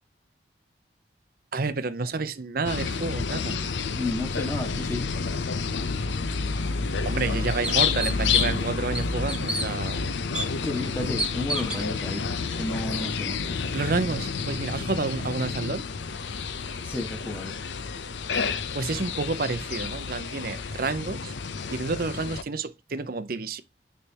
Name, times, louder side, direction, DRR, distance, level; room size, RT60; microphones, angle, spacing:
voice 1, 1.5-3.6 7.0-10.0 13.7-15.8 18.7-21.3 21.7-23.6, right 3 dB, 55° right, 0.7 m, -29 dB
sound 1, 2.6-22.4, left 5 dB, 85° left, 0.6 m, -30 dB
voice 2, 4.0-5.1 10.6-12.3 12.6-13.6 16.8-17.5, left 2 dB, 15° left, 1.4 m, -32 dB
sound 2, 6.6-6.7 7.2-7.3 7.6-8.6 8.9-9.7 10.3-10.5 11.2-11.8, right 1 dB, 5° right, 1.0 m, -30 dB
9.8 x 3.4 x 2.9 m
head